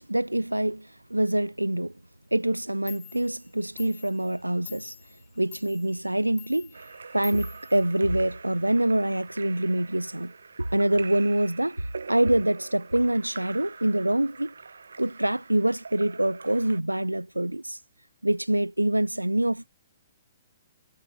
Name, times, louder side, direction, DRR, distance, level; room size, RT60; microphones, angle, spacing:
voice 1, 0.0-1.9 2.3-5.0 5.4-6.7 7.1-14.5 15.0-17.8 18.2-19.7, right 1 dB, 90° right, 0.3 m, -25 dB
Clock, 2.6-2.7 2.9-8.5, left 37 dB, 30° left, 8.0 m, -49 dB
Splash splatter / Drip / Trickle dribble, 6.7-16.8, right 4 dB, 70° right, 0.9 m, -44 dB
figure-of-eight pair, 120°, 0 cm